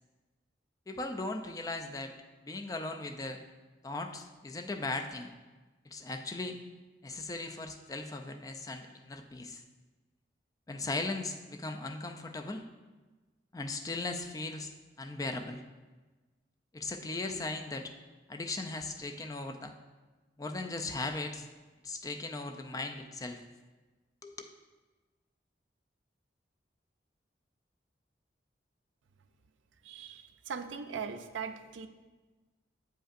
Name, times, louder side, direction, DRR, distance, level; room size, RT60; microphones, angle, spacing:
voice 1, 0.9-2.1 2.4-3.4 3.8-5.3 5.8-6.6 7.0-9.6 10.7-12.6 13.5-15.6 16.7-17.9 18.3-19.7 20.4-21.5 21.8-23.4 24.2-24.4, left 2 dB, 20° left, 5 dB, 0.3 m, -38 dB
voice 2, 29.8-31.9, right 6 dB, 90° right, 9 dB, 0.4 m, -40 dB
7.8 x 5.1 x 2.5 m, 1.3 s
head